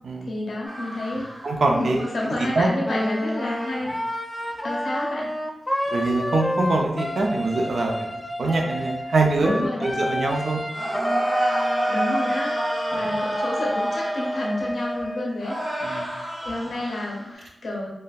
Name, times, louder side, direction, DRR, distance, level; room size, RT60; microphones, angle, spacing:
voice 1, 0.2-1.3 1.8-3.9 4.6-5.3 9.4-10.0 11.9-12.6 12.9-15.6 16.1-17.9, left 1 dB, 85° left, -2 dB, 0.5 m, -30 dB
sound 1, 0.6-2.6 3.4-4.1 4.4-4.5 10.7-15.0 15.4-17.3, right 1 dB, 50° right, 0.7 m, -30 dB
voice 2, 1.4-2.1 2.4-2.7 3.8-4.0 5.9-10.6 12.9-13.2 15.8-16.1, right 2 dB, 80° right, 2 dB, 0.4 m, -24 dB
Wind instrument woodwind instrument, 2.8-15.3, equal, 20° left, 0.3 m, -29 dB
3.3 x 2.1 x 2.3 m, 0.85 s
wide cardioid pair, 80°, 0 cm